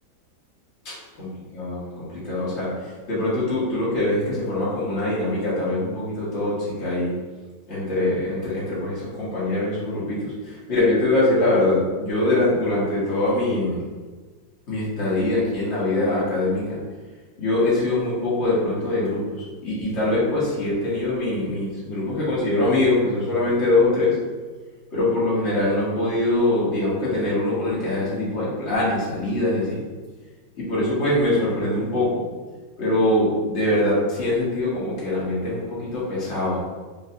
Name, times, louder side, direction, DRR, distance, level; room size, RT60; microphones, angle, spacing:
voice 1, 0.9-7.1 7.7-13.8 14.7-16.8 17.4-24.2 24.9-29.8 30.6-32.2 32.8-36.6, left 2 dB, 40° left, -8 dB, 1.6 m, -23 dB
5.4 x 2.6 x 2.7 m, 1.3 s
omnidirectional pair, 2.0 m